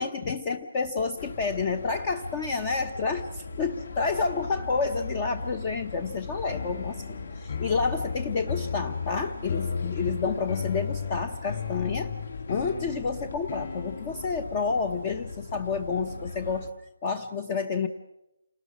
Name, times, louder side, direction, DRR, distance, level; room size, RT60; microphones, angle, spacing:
voice 1, 0.0-12.1 12.5-16.7 17.0-17.9, left 4 dB, 20° left, 9 dB, 0.8 m, -29 dB
sound 1, 1.2-16.7, left 3 dB, 70° left, 2.9 m, -39 dB
sound 2, 6.5-14.5, left 6 dB, 45° left, 4.6 m, -35 dB
28.5 x 19.5 x 6.1 m, 0.89 s
hypercardioid pair, 175°, 0 cm